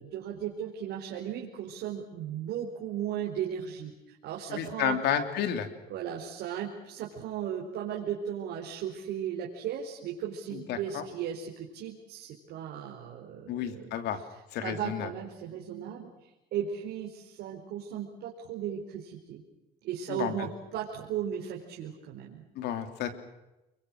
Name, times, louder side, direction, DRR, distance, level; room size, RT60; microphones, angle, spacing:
voice 1, 0.0-5.0 5.9-14.0 14.6-19.4 19.8-22.4, right 9 dB, 80° right, -1 dB, 4.6 m, -36 dB
voice 2, 4.5-5.7 10.5-11.0 13.5-14.2 14.5-15.1 20.1-20.3 22.5-23.1, left 9 dB, 85° left, 8 dB, 3.2 m, -31 dB
30.0 x 23.0 x 6.4 m, 0.96 s
cardioid pair, 110°, 17 cm